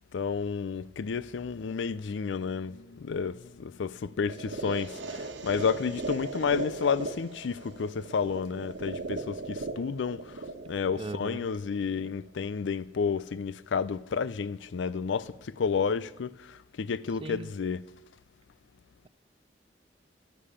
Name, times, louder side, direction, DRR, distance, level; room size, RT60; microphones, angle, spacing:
voice 1, 0.1-17.8, left 6 dB, 85° left, 0.4 m, -31 dB
sound 1, 4.3-12.3, right 3 dB, 85° right, 1.3 m, -38 dB
voice 2, 11.0-11.4 17.2-17.5, right 3 dB, 30° right, 0.4 m, -38 dB
12.0 x 9.9 x 5.7 m
head